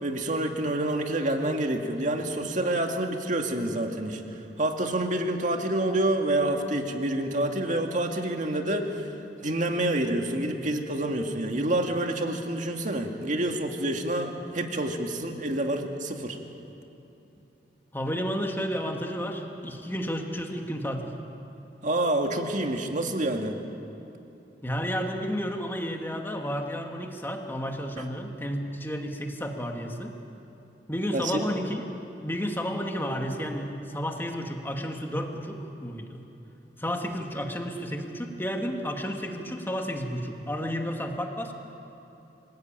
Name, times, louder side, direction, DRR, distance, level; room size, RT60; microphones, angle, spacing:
voice 1, 0.0-4.2 4.6-9.1 9.4-16.4 21.8-23.5 28.0-28.1 31.1-31.4, right 1 dB, 45° right, 3 dB, 2.0 m, -28 dB
voice 2, 17.9-21.1 24.6-30.2 30.9-31.8 32.2-36.2 36.8-41.5, equal, 15° left, 3 dB, 2.0 m, -32 dB
26.0 x 17.0 x 9.0 m, 2.9 s
head